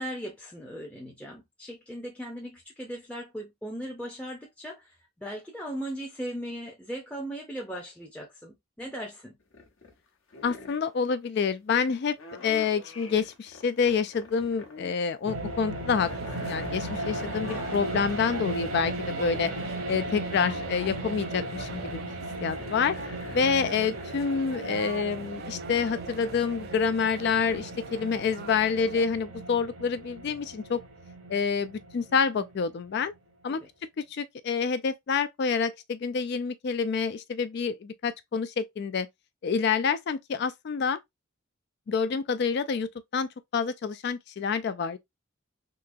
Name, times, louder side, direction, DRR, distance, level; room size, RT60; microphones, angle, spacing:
voice 1, 0.0-9.3 33.5-33.7, equal, 5° left, 0.6 m, -38 dB
sound 1, 9.4-10.0 10.3-10.9 12.1-14.9 15.2-18.4 18.8-24.8 25.2-25.4, left 3 dB, 65° left, 1.1 m, -45 dB
voice 2, 10.4-12.2 12.4-16.1 16.4-19.5 19.9-22.0 22.4-23.0 23.3-30.8 31.3-33.1 33.4-33.6 34.0-39.1 39.4-41.0 41.9-45.0, left 6 dB, 50° left, 0.3 m, -28 dB
sound 2, 15.3-33.0, right 2 dB, 85° right, 1.3 m, -37 dB
sound 3, 16.0-29.1, right 5 dB, 45° right, 0.4 m, -43 dB
3.7 x 2.8 x 2.5 m
head